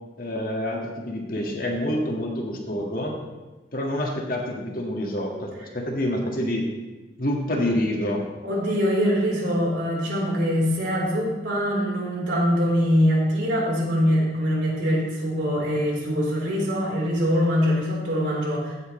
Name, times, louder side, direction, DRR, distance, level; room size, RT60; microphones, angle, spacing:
voice 1, 0.2-3.2 3.7-6.7 7.2-8.2, left 1 dB, 50° left, 0 dB, 1.9 m, -27 dB
voice 2, 8.4-18.7, equal, 85° right, -4 dB, 4.0 m, -23 dB
16.0 x 7.9 x 3.2 m, 1.2 s
head